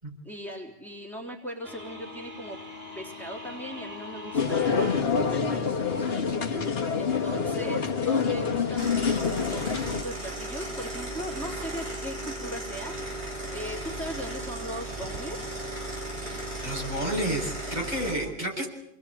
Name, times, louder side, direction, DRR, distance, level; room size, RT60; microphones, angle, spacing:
voice 1, 0.2-2.6 2.9-6.0 7.0-12.9 13.5-15.6 18.2-18.6, equal, ahead, -2 dB, 3.6 m, -39 dB
sound 1, 1.6-17.9, left 2 dB, 65° right, 3.5 m, -46 dB
sound 2, 4.3-10.0, left 6 dB, 65° left, 1.9 m, -26 dB
sound 3, 8.8-18.1, right 1 dB, 90° right, 8.1 m, -36 dB
voice 2, 16.6-18.7, right 1 dB, 40° right, -2 dB, 6.8 m, -30 dB
28.0 x 20.5 x 8.7 m, 0.88 s
omnidirectional pair, 1.1 m